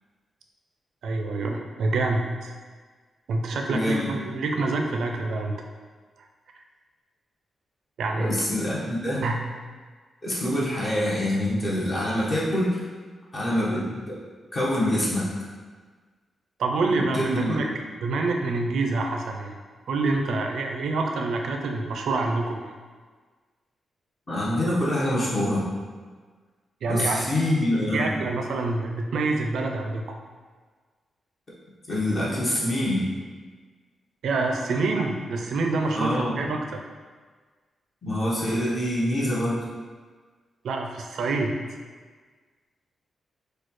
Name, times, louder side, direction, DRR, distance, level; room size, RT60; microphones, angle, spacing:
voice 1, 1.0-2.6 3.3-5.5 8.0-8.4 9.2-9.4 16.6-17.7 18.0-19.6 19.9-22.7 26.8-27.2 27.9-30.0 34.2-36.8 40.6-41.5, right 3 dB, 85° right, 2 dB, 0.5 m, -26 dB
voice 2, 3.7-4.1 8.2-9.2 10.2-12.8 13.3-14.2 14.5-15.2 17.1-17.6 24.3-25.7 26.8-28.1 31.9-33.1 36.0-36.4 38.0-39.6, left 1 dB, 35° left, -7 dB, 1.1 m, -25 dB
6.3 x 2.3 x 3.1 m, 1.5 s
wide cardioid pair, 115°, 0 cm